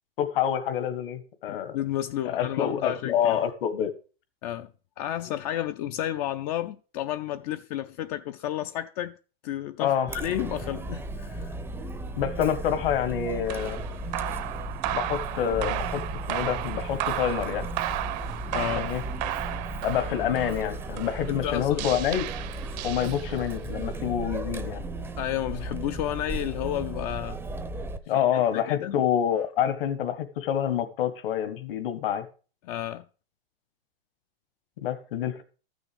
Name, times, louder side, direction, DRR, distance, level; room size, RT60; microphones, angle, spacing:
voice 1, 0.2-1.8 2.2-3.9 9.8-10.1 12.2-13.8 14.9-16.0 16.3-17.7 18.7-19.0 19.8-22.3 22.8-24.8 28.1-32.3 34.8-35.4, left 9 dB, 65° left, 1.6 m, -27 dB
voice 2, 1.5-3.4 4.4-4.7 5.0-9.2 9.4-11.5 18.5-18.9 21.3-21.9 25.2-27.4 28.3-28.9 32.6-33.1, left 12 dB, 40° left, 0.5 m, -32 dB
Chatter, 10.1-28.0, right 2 dB, 10° right, 0.6 m, -35 dB
sound 1, 13.5-23.6, right 14 dB, 45° right, 0.8 m, -34 dB
13.5 x 6.3 x 5.1 m
hypercardioid pair, 135°, 30 cm